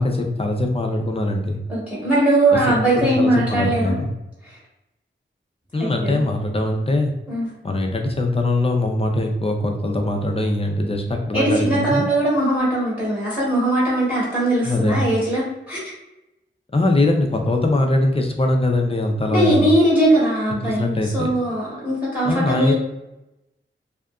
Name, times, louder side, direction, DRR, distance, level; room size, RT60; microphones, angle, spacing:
voice 1, 0.0-1.6 3.0-4.1 5.7-7.1 7.6-12.1 14.6-15.1 16.7-19.7 20.6-21.3 22.2-22.7, left 2 dB, 30° left, 2 dB, 0.4 m, -21 dB
voice 2, 1.7-3.9 4.4-4.6 5.7-6.2 7.3-7.5 11.3-15.9 19.3-22.7, right 1 dB, 5° right, -8 dB, 1.0 m, -20 dB
2.8 x 2.4 x 2.3 m, 0.94 s
wide cardioid pair, 90°, 20 cm